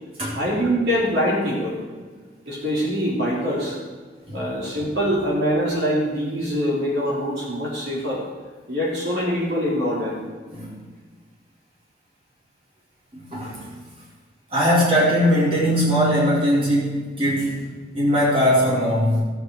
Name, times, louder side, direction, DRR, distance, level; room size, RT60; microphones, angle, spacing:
voice 1, 0.3-1.8 2.5-3.8 4.3-8.2 8.7-10.2, equal, 70° right, -5 dB, 4.0 m, -24 dB
voice 2, 13.1-13.6 14.5-17.6 17.9-19.2, equal, 30° right, -7 dB, 4.2 m, -20 dB
17.0 x 8.1 x 4.9 m, 1.5 s
head